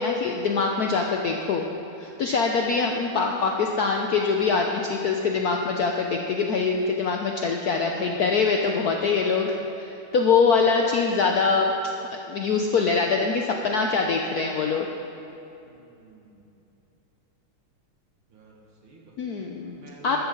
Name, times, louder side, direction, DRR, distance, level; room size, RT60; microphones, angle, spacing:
voice 1, 0.0-1.6 2.0-11.7 12.3-14.9 19.2-19.7 20.0-20.2, left 4 dB, 70° left, 2 dB, 0.9 m, -23 dB
voice 2, 15.6-16.6 18.3-20.2, right 3 dB, 70° right, -2 dB, 2.7 m, -51 dB
13.0 x 13.0 x 3.9 m, 2.8 s
omnidirectional pair, 2.4 m